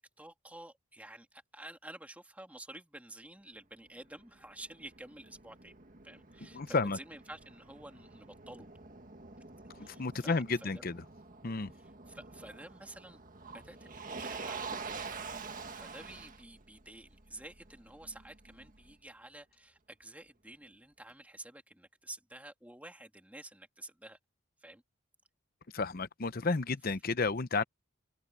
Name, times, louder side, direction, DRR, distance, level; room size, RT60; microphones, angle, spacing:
voice 1, 0.0-5.8 6.0-8.7 9.8-10.8 11.7-15.3 15.7-24.2 24.6-24.8, right 1 dB, 5° right, 2.8 m, -51 dB
Motor vehicle (road), 3.9-18.9, right 4 dB, 40° right, 1.8 m, -47 dB
voice 2, 6.5-7.0 9.8-11.0 11.4-11.7 25.7-27.6, left 3 dB, 45° left, 0.7 m, -32 dB
head